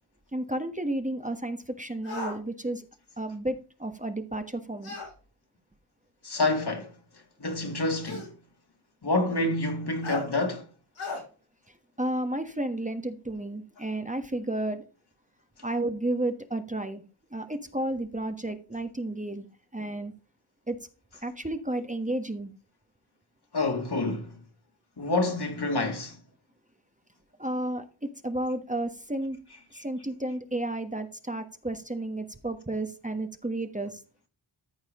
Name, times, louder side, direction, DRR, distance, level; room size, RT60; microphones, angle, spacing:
voice 1, 0.3-2.8 3.2-5.0 12.0-14.8 15.6-17.0 17.3-19.5 19.7-20.1 20.7-20.8 21.2-22.5 27.4-29.4 29.7-34.0, right 1 dB, 15° right, 1.3 m, -32 dB
sound 1, 2.0-2.4 4.8-5.1 6.4-6.5 8.0-8.3 10.0-10.3 11.0-11.2, left 3 dB, 90° left, 5.7 m, -35 dB
voice 2, 6.2-6.9 7.4-8.3 9.0-10.7 23.5-24.4 25.0-26.2, left 2 dB, 55° left, 2.6 m, -27 dB
14.0 x 4.8 x 3.7 m
cardioid pair, 45°, 48 cm